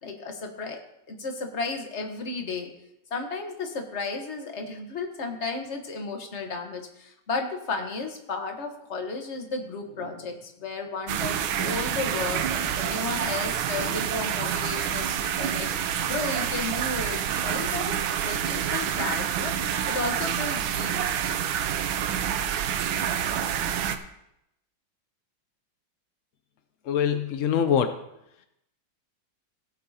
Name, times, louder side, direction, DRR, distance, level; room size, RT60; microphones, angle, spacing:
voice 1, 0.0-2.7 3.1-21.1 22.7-22.8, left 3 dB, 40° left, 4 dB, 1.3 m, -34 dB
sound 1, 11.1-24.0, right 9 dB, 85° right, 1.5 m, -28 dB
voice 2, 26.8-28.1, left 8 dB, 75° left, 8 dB, 0.7 m, -24 dB
17.0 x 8.1 x 2.8 m, 0.81 s
omnidirectional pair, 2.1 m